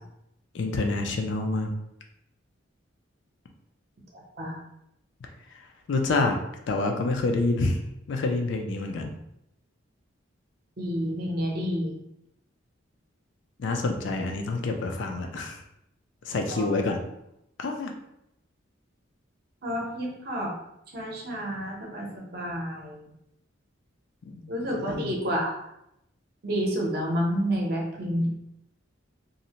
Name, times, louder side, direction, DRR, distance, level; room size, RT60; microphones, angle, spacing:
voice 1, 0.5-1.7 5.9-6.4 6.7-7.8 8.1-9.1 13.6-15.6 16.3-17.0 17.6-17.9 24.2-25.1, left 3 dB, 65° left, 3 dB, 0.4 m, -27 dB
voice 2, 10.8-12.0 16.5-16.7 19.6-20.6 20.9-23.1 24.5-25.5 26.4-28.3, equal, 50° right, -2 dB, 0.6 m, -29 dB
2.6 x 2.1 x 2.8 m, 0.81 s
head